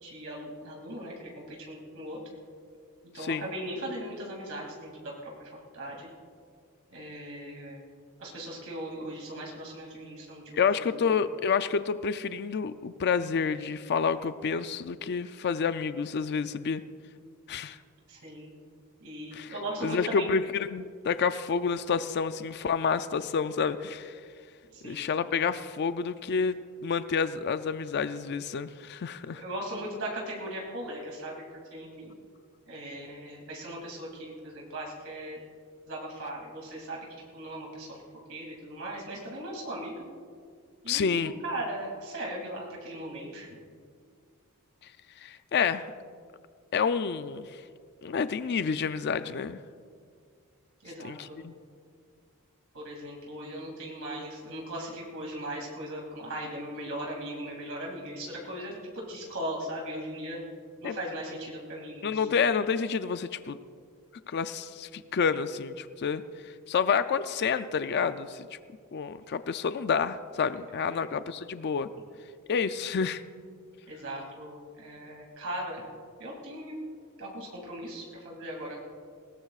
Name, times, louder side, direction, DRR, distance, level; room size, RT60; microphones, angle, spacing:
voice 1, 0.0-2.2 3.1-6.1 6.9-7.8 8.2-10.6 10.9-11.1 18.1-18.5 19.0-20.3 24.7-25.1 29.3-32.1 32.7-35.4 35.9-37.1 37.3-38.0 38.3-40.0 40.8-43.5 50.8-51.4 52.7-60.4 60.8-62.3 70.8-71.1 73.9-75.8 76.2-76.7 77.2-78.8, right 1 dB, 65° right, -2 dB, 2.7 m, -38 dB
voice 2, 3.2-3.5 10.5-16.8 17.5-17.8 19.3-19.5 19.8-24.2 24.8-29.4 40.9-41.3 45.2-45.9 46.7-47.6 48.0-49.6 51.0-51.5 60.8-60.9 62.0-63.6 64.3-68.6 68.9-71.9 72.5-73.2, left 6 dB, 50° left, 12 dB, 0.4 m, -29 dB
20.5 x 18.5 x 2.4 m, 2.1 s
head